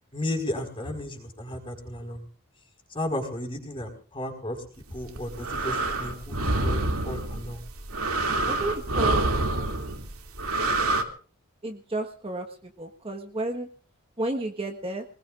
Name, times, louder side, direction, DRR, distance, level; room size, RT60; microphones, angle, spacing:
voice 1, 0.1-2.2 2.9-4.6 4.9-7.6, left 1 dB, 25° left, 4 dB, 4.8 m, -34 dB
sound 1, 5.0-11.0, right 2 dB, 80° right, 2.6 m, -27 dB
voice 2, 8.4-9.2 9.5-9.7 11.6-13.7 14.2-15.0, right 2 dB, 25° right, 4 dB, 1.4 m, -32 dB
25.5 x 20.0 x 2.5 m, 0.39 s
head